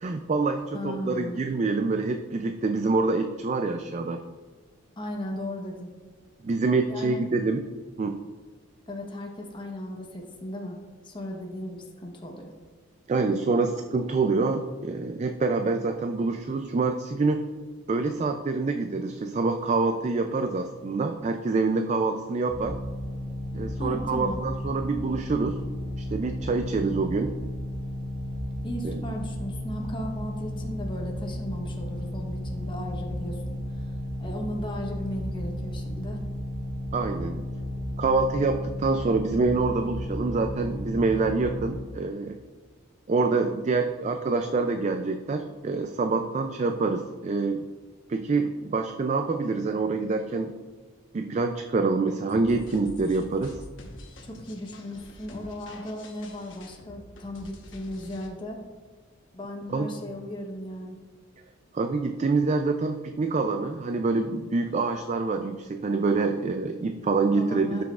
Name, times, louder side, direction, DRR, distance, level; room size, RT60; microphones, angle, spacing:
voice 1, 0.0-4.3 6.4-7.6 8.0-8.2 13.1-17.4 17.9-22.8 23.5-25.6 26.0-27.3 28.8-29.0 36.9-37.5 38.0-42.4 43.1-47.6 48.1-50.5 51.1-53.6 59.7-59.9 61.7-67.8, right 3 dB, 35° right, 6 dB, 0.3 m, -26 dB
voice 2, 0.7-1.4 5.0-5.9 6.9-7.2 8.9-10.8 11.0-12.5 23.8-24.4 28.6-33.9 34.2-36.2 54.2-58.6 59.3-61.0 67.4-67.8, left 1 dB, 25° left, 0 dB, 0.9 m, -36 dB
sound 1, 22.5-41.7, equal, 75° right, 1.9 m, -33 dB
sound 2, 52.3-58.3, left 1 dB, 65° left, 1.1 m, -47 dB
12.5 x 5.9 x 2.4 m, 1.4 s
head